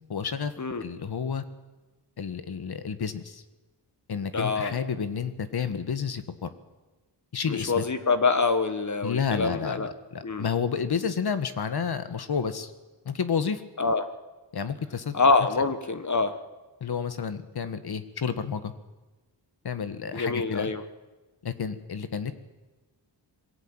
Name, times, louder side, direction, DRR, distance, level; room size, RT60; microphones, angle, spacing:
voice 1, 0.1-0.5 0.8-1.4 2.2-3.4 4.1-6.5 7.3-7.8 9.0-12.7 13.1-13.6 14.5-15.2 16.8-18.7 19.6-20.7 21.4-22.3, left 6 dB, 60° left, 11 dB, 1.8 m, -30 dB
voice 2, 4.3-4.8 7.5-9.9 10.2-10.5 13.8-14.1 15.1-16.4 20.1-20.8, left 4 dB, 40° left, 10 dB, 1.6 m, -25 dB
22.5 x 17.0 x 9.0 m, 1.2 s
cardioid pair, 80°, 43 cm